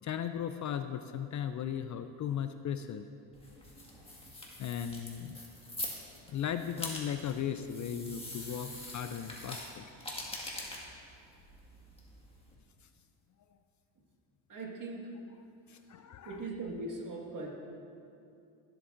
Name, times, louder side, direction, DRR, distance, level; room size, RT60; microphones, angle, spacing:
voice 1, 0.0-3.1 3.5-3.6 4.6-5.4 6.3-9.9 15.7-16.4, left 9 dB, 45° left, 9 dB, 0.4 m, -37 dB
sound 1, 3.3-12.5, left 1 dB, 15° left, 1.9 m, -44 dB
voice 2, 14.5-15.1 16.2-17.6, right 2 dB, 45° right, -1 dB, 1.9 m, -40 dB
15.5 x 7.8 x 2.6 m, 2.6 s
cardioid pair, 85°, 43 cm